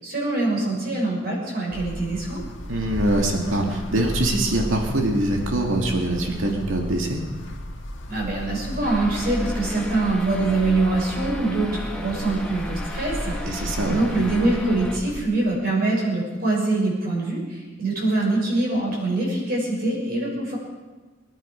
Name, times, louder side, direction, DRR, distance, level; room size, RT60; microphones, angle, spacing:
voice 1, 0.0-2.4 8.1-20.6, right 2 dB, 50° right, -3 dB, 6.1 m, -24 dB
sound 1, 1.7-15.2, left 1 dB, 65° left, 2.0 m, -33 dB
voice 2, 2.7-7.2 13.4-14.0, right 1 dB, 80° right, 1 dB, 2.3 m, -23 dB
sound 2, 8.8-15.0, left 1 dB, 5° left, 1.4 m, -36 dB
24.0 x 11.0 x 5.2 m, 1.3 s
head